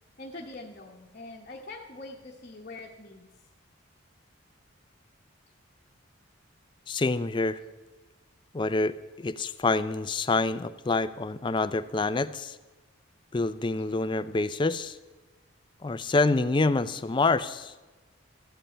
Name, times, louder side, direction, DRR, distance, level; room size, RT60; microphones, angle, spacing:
voice 1, 0.2-3.3, left 2 dB, 40° left, -4 dB, 1.0 m, -43 dB
voice 2, 6.9-7.6 8.5-12.6 13.3-15.0 15.8-17.7, left 3 dB, 20° left, 14 dB, 0.3 m, -27 dB
13.5 x 5.5 x 8.6 m, 1.2 s
head